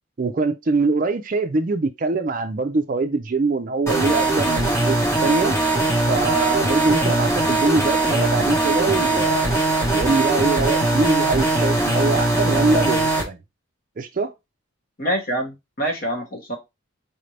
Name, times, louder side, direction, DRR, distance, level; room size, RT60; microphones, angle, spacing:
voice 1, 0.2-5.6 6.1-9.6 9.9-13.4 14.0-14.3, right 3 dB, 40° right, 0.4 m, -23 dB
sound 1, 3.9-13.2, right 2 dB, 15° left, 1.0 m, -20 dB
voice 2, 15.0-16.6, right 1 dB, 45° left, 1.2 m, -26 dB
4.2 x 2.7 x 3.2 m
head